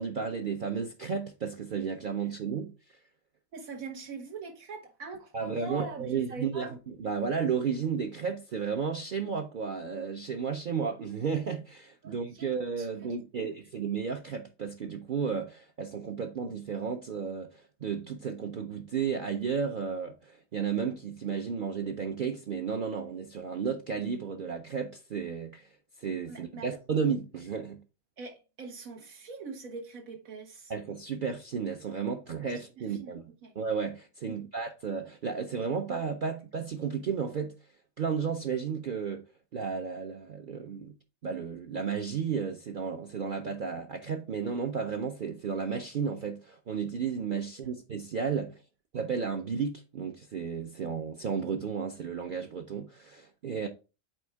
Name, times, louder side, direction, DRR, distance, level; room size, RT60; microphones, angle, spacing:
voice 1, 0.0-3.0 5.3-6.7 7.0-25.7 26.0-27.8 30.7-33.2 33.6-37.6 38.0-39.2 39.5-40.9 41.2-48.6 48.9-53.7, right 6 dB, 55° right, 0.6 m, -33 dB
voice 2, 3.5-6.8 12.0-13.5 26.3-26.8 28.2-30.7 33.0-33.5 34.3-34.4 47.6-47.7, right 3 dB, 85° right, 1.7 m, -43 dB
7.7 x 4.2 x 3.4 m
omnidirectional pair, 1.4 m